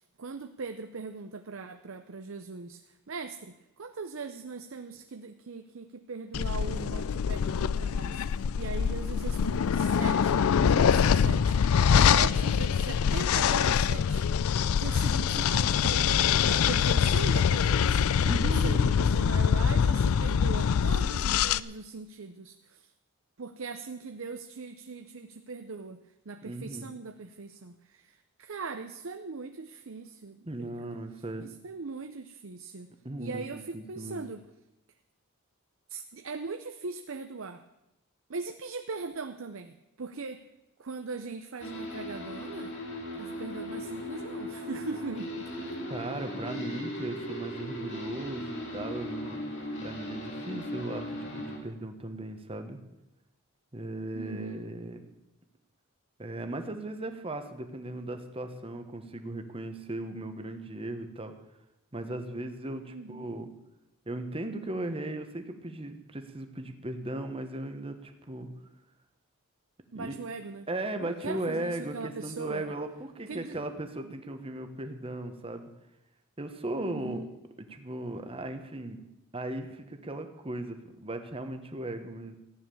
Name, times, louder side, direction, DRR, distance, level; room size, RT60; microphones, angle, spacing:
voice 1, 0.2-2.8 3.1-11.6 11.9-22.9 23.4-26.0 26.3-30.9 31.4-32.9 33.2-34.5 35.9-37.6 38.3-40.4 40.8-42.7 43.2-45.7 54.1-54.7 62.9-63.3 69.9-70.7 71.0-72.7 73.3-73.6 76.8-77.3, right 4 dB, 60° right, 7 dB, 0.7 m, -40 dB
sound 1, 6.3-21.6, left 7 dB, 75° left, 0.4 m, -24 dB
voice 2, 18.2-18.9 26.4-26.9 30.4-31.5 33.0-34.2 45.9-49.4 49.8-52.8 53.7-55.0 56.2-61.3 61.9-63.5 64.1-68.5 69.9-70.1 70.7-75.7 76.4-77.2 77.6-79.0 79.3-82.4, right 1 dB, 25° right, 7 dB, 1.2 m, -37 dB
sound 2, 41.6-51.6, equal, 55° left, 3.2 m, -38 dB
14.5 x 9.6 x 7.0 m, 0.94 s
head